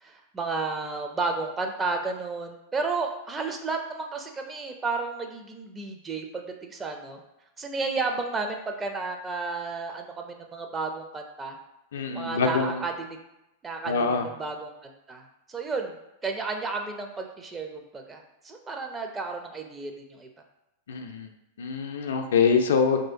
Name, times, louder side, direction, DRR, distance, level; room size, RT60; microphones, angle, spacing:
voice 1, 0.0-7.2 7.6-11.6 12.1-13.2 13.6-20.3, right 4 dB, 20° right, 3 dB, 0.4 m, -32 dB
voice 2, 11.9-12.8 13.9-14.3 20.9-21.3 21.6-23.0, left 5 dB, 70° left, 5 dB, 0.4 m, -24 dB
3.2 x 2.7 x 2.6 m, 0.88 s
hypercardioid pair, 100°, 0 cm